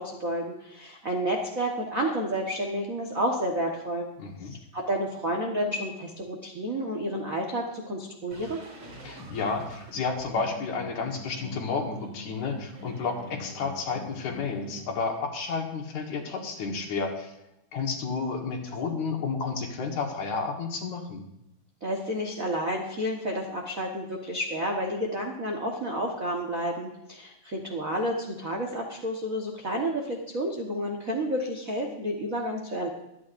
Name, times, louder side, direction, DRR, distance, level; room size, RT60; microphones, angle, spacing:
voice 1, 0.0-4.1 4.7-8.6 21.8-32.9, equal, 75° right, -1 dB, 0.7 m, -30 dB
voice 2, 4.2-4.6 9.0-17.3 17.7-21.2, left 4 dB, 65° left, 2 dB, 2.7 m, -31 dB
sound 1, 8.3-14.8, left 1 dB, 45° right, 4.7 m, -44 dB
24.0 x 9.5 x 2.6 m, 0.88 s
omnidirectional pair, 3.9 m